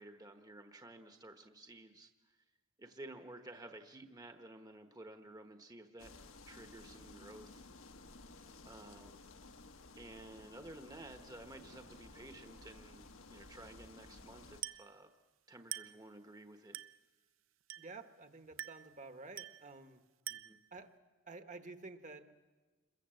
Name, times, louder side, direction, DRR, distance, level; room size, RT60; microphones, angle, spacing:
voice 1, 0.0-2.4 2.8-6.2 6.5-7.6 8.6-9.2 9.9-15.1 15.5-16.8 20.3-20.6, right 2 dB, 20° right, 6 dB, 1.1 m, -53 dB
sound 1, 6.0-14.6, left 3 dB, 75° left, 1.5 m, -55 dB
Glass, 14.6-15.0 15.7-16.1 16.7-17.1 17.7-18.0 18.6-18.9 19.4-19.7 20.3-20.7, right 13 dB, 70° right, 0.7 m, -45 dB
voice 2, 17.8-20.0 20.7-20.9 21.3-22.3, right 3 dB, 40° right, 9 dB, 1.3 m, -51 dB
27.5 x 22.5 x 7.7 m, 1.3 s
head